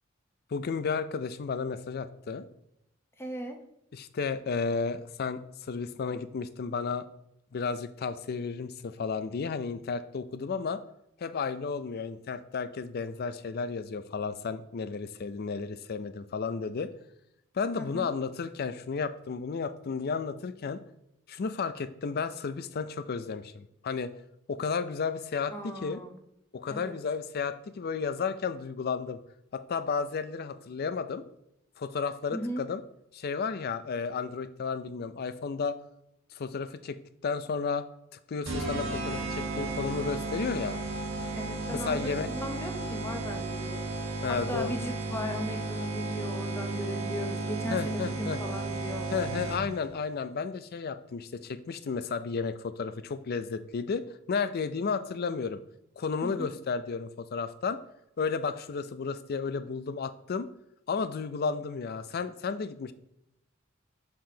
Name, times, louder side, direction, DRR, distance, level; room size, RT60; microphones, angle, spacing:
voice 1, 0.5-2.4 3.9-5.4 5.7-7.1 7.5-10.8 11.2-16.9 17.5-20.8 21.3-24.1 24.5-26.0 26.5-29.2 29.5-31.2 31.8-32.8 33.1-35.8 36.3-37.0 37.2-37.9 38.3-40.8 41.7-42.3 44.2-44.8 47.7-48.4 49.1-55.6 56.0-57.8 58.2-60.5 60.9-62.9, left 5 dB, 50° left, 12 dB, 0.4 m, -33 dB
voice 2, 3.2-3.6 17.8-18.1 25.5-26.2 26.7-26.9 32.3-32.6 41.3-43.8 44.3-49.1 56.2-56.5, equal, 10° left, 3 dB, 0.8 m, -37 dB
sound 1, 38.4-49.8, right 3 dB, 80° right, 1.3 m, -34 dB
6.7 x 5.8 x 2.8 m, 0.81 s
head